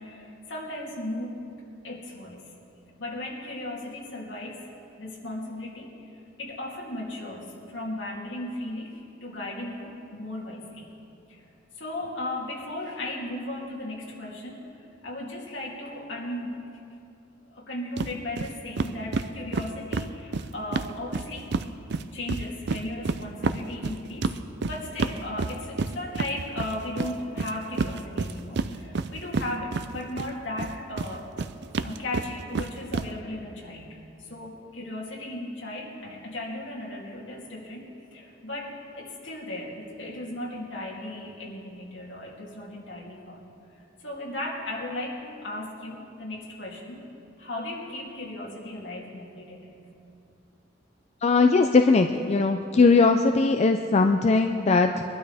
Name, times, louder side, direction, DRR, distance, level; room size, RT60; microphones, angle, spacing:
voice 1, 0.0-1.4 1.8-2.5 3.0-4.7 5.0-11.0 11.3-11.5 11.8-16.5 17.4-21.5 22.1-24.4 24.6-31.3 31.8-43.4 43.7-47.0 47.4-49.7, left 1 dB, 65° left, -3 dB, 2.9 m, -36 dB
sound 1, 18.0-18.1 18.4-18.5 18.8-21.7 21.9-30.3 30.6-33.1, right 4 dB, 60° right, 0.5 m, -29 dB
voice 2, 51.2-55.0, left 4 dB, 35° left, 5 dB, 0.4 m, -20 dB
22.5 x 12.0 x 3.5 m, 2.6 s
head